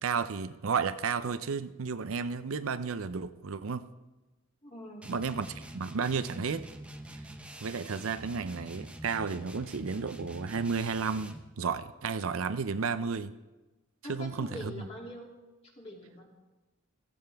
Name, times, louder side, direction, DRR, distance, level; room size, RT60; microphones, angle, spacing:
voice 1, 0.0-3.8 5.1-6.6 7.6-13.3 14.1-14.7, right 5 dB, 75° right, 12 dB, 0.5 m, -32 dB
voice 2, 4.6-5.2 14.0-15.3 15.6-16.2, left 1 dB, 30° left, -2 dB, 2.7 m, -43 dB
sound 1, 5.0-11.5, right 1 dB, 5° right, 0.7 m, -46 dB
15.5 x 15.0 x 3.5 m, 1.1 s
head